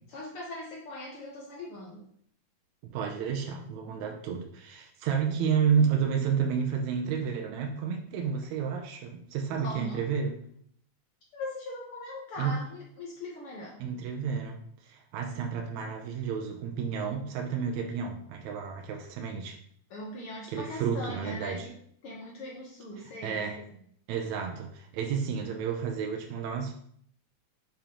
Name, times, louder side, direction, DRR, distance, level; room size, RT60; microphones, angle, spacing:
voice 1, 0.1-2.0 9.6-10.0 11.3-13.8 19.9-21.7 22.0-23.8, left 1 dB, 75° left, -2 dB, 1.2 m, -40 dB
voice 2, 2.9-10.4 12.4-12.6 13.8-19.6 20.5-21.6 23.2-23.6 24.1-26.7, right 6 dB, 75° right, 2 dB, 1.7 m, -31 dB
6.9 x 5.1 x 2.9 m, 0.65 s
omnidirectional pair, 3.9 m